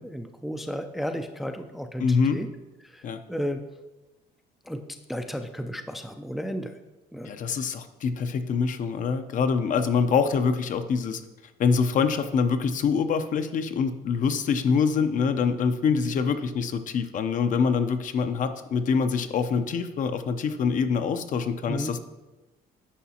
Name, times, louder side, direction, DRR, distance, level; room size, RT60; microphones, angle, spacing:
voice 1, 0.0-2.5 2.8-3.6 4.6-4.8 5.1-6.8 7.1-7.6 21.6-21.9, equal, ahead, 6 dB, 0.4 m, -33 dB
voice 2, 2.0-2.4 3.0-3.2 7.3-11.2 11.6-22.0, left 5 dB, 50° left, 9 dB, 0.6 m, -25 dB
9.9 x 5.4 x 2.9 m, 1.1 s
cardioid pair, 110°, 17 cm